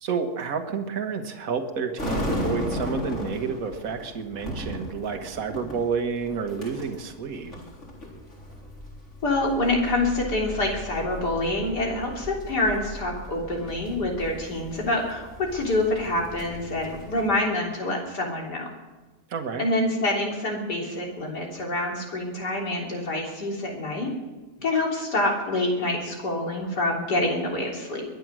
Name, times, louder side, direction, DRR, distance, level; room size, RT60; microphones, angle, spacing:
voice 1, 0.0-7.6 19.3-19.7, right 5 dB, 60° right, 6 dB, 1.8 m, -30 dB
sound 1, 2.0-17.3, left 1 dB, 45° left, 4.5 m, -36 dB
voice 2, 9.2-18.7 19.6-24.1 24.6-28.0, left 2 dB, 90° left, -1 dB, 4.0 m, -26 dB
22.5 x 10.0 x 6.3 m, 1.2 s
omnidirectional pair, 1.7 m